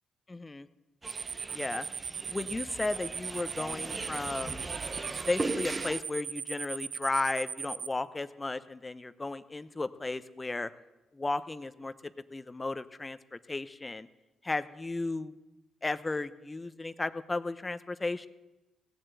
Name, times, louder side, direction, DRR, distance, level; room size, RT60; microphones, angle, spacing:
voice 1, 0.3-0.7 1.5-1.9 2.3-4.7 5.3-10.7 11.1-11.9 12.3-14.1 14.4-15.3 15.8-18.3, left 2 dB, 25° left, 13 dB, 0.8 m, -34 dB
sound 1, 1.0-6.0, right 3 dB, 30° right, 0.9 m, -38 dB
sound 2, 1.1-7.9, right 7 dB, 55° right, 0.4 m, -38 dB
17.0 x 7.6 x 8.3 m, 1.0 s
supercardioid pair, 65°, 0 cm